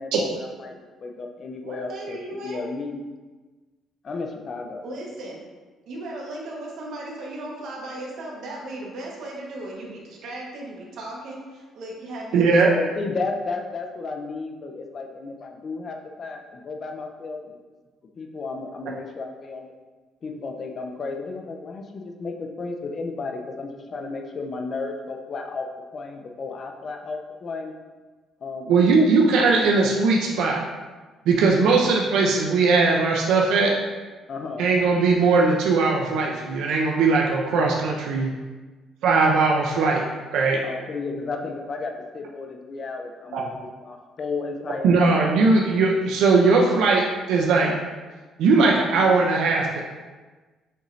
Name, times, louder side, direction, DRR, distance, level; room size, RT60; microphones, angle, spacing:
voice 1, 0.0-3.0 4.0-4.8 12.7-17.5 18.2-19.7 20.2-25.7 25.9-27.7 28.4-29.0 29.3-29.9 34.3-34.6 40.6-45.3, left 3 dB, 30° left, 3 dB, 0.4 m, -33 dB
voice 2, 1.6-2.7 4.8-5.4 5.9-12.8, right 1 dB, 60° right, -2 dB, 1.0 m, -36 dB
voice 3, 12.3-12.7 28.7-30.6 31.3-33.7 34.6-38.3 39.0-40.0 40.3-40.6 43.3-43.5 44.8-47.0 47.3-47.7 48.4-49.8, right 4 dB, 80° right, -1 dB, 0.5 m, -19 dB
6.4 x 2.6 x 3.1 m, 1.3 s
cardioid pair, 175°, 0 cm